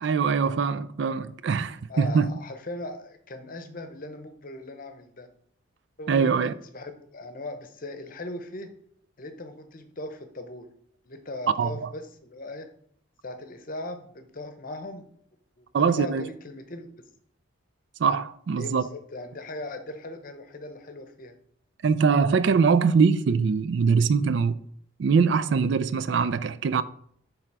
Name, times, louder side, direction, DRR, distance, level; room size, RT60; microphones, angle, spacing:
voice 1, 0.0-2.3 6.1-6.5 11.6-11.9 15.7-16.3 18.0-18.8 21.8-24.6 25.0-26.8, right 5 dB, 60° right, 0.3 m, -22 dB
voice 2, 1.9-5.3 6.0-8.7 9.2-10.7 11.0-12.7 13.2-15.1 15.6-16.9 18.6-21.4, left 2 dB, 45° left, 0.8 m, -39 dB
7.5 x 3.4 x 4.6 m
head